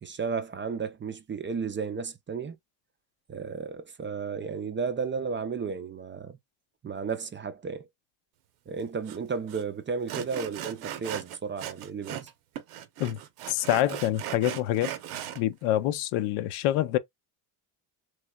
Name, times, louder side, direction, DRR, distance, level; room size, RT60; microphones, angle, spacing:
voice 1, 0.0-2.6 3.3-6.4 6.8-7.9 8.7-12.3, right 5 dB, 25° right, 0.4 m, -33 dB
Sawing, 9.1-9.2 9.5-9.6 10.1-12.3 12.6-15.4, right 11 dB, 85° right, 0.8 m, -38 dB
voice 2, 13.5-14.9 15.4-17.0, left 13 dB, 80° left, 0.7 m, -26 dB
3.2 x 3.2 x 2.2 m
supercardioid pair, 85°, 49 cm